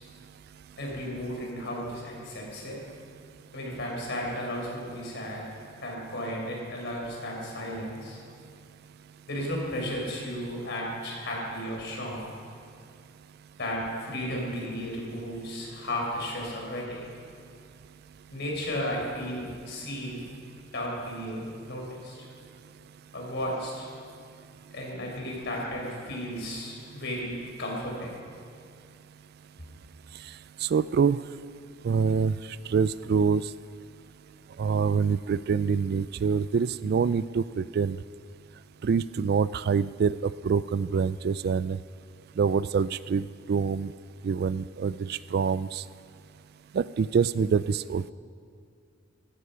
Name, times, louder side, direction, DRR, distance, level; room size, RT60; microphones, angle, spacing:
voice 1, 0.8-2.8 3.5-5.4 5.8-8.2 9.3-12.3 13.6-17.0 18.3-20.3 20.7-22.2 23.1-23.9 24.7-28.1, equal, 60° left, -2 dB, 4.6 m, -34 dB
voice 2, 30.6-31.2 31.8-32.4 32.7-33.5 34.6-38.0 38.8-41.8 42.4-43.9 44.2-45.8 46.7-48.1, right 6 dB, 55° right, 17 dB, 0.3 m, -25 dB
15.0 x 14.5 x 5.7 m, 2.3 s
head